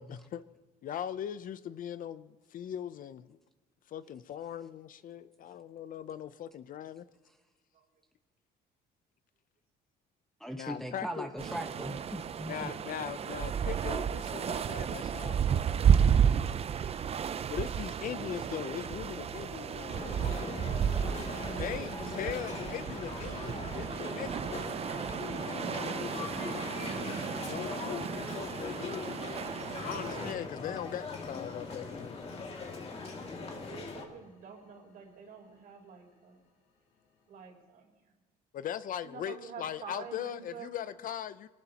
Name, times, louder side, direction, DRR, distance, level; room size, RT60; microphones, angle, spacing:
voice 1, 0.0-0.4 0.8-3.4 3.9-7.0 10.5-11.3 12.5-15.9 17.5-20.7 21.6-24.7 25.5-32.3 38.5-41.5, left 10 dB, 55° left, 14 dB, 0.6 m, -40 dB
voice 2, 10.4-12.7, equal, ahead, 3 dB, 1.2 m, -39 dB
sound 1, 11.4-30.3, right 8 dB, 35° right, 0.6 m, -32 dB
sound 2, 18.3-37.5, left 3 dB, 75° left, 3.2 m, -58 dB
sound 3, 19.9-34.0, left 4 dB, 35° left, 2.4 m, -40 dB
voice 3, 20.1-22.7 33.3-36.4 37.3-38.1 39.0-40.8, right 6 dB, 60° right, 1 dB, 3.8 m, -49 dB
24.0 x 19.0 x 2.9 m, 1.2 s
cardioid pair, 110°, 17 cm